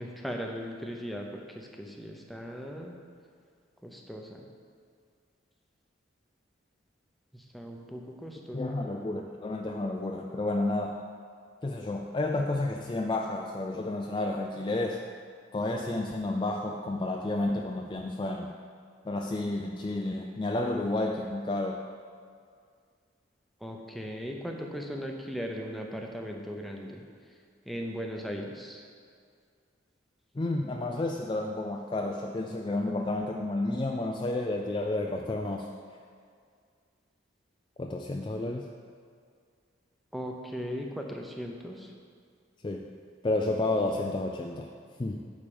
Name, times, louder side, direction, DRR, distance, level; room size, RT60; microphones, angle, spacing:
voice 1, 0.0-2.9 3.8-4.5 7.3-8.7 23.6-27.0 27.7-28.8 40.1-41.9, equal, ahead, 1 dB, 0.7 m, -38 dB
voice 2, 8.5-11.0 11.6-15.1 15.5-18.5 19.1-21.8 30.4-35.7 37.8-38.7 42.6-42.8 43.2-44.7 45.0-45.3, left 2 dB, 25° left, 2 dB, 0.3 m, -31 dB
8.7 x 4.8 x 7.0 m, 2.2 s
head